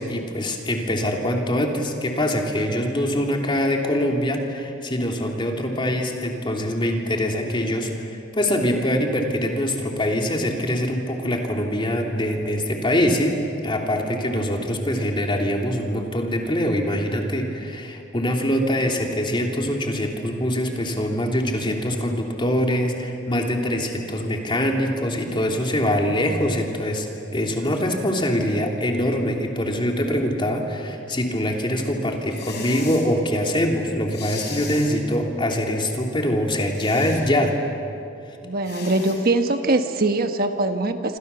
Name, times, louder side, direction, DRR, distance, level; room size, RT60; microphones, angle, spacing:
voice 1, 0.0-27.1 27.3-37.6, equal, 25° left, 1 dB, 3.1 m, -24 dB
sound 1, 32.3-33.1 34.1-35.0 36.7-37.2 38.6-39.2, left 4 dB, 60° left, 6.1 m, -36 dB
voice 2, 38.4-41.2, right 2 dB, 50° right, 6 dB, 1.3 m, -22 dB
28.0 x 26.0 x 7.0 m, 2.7 s
head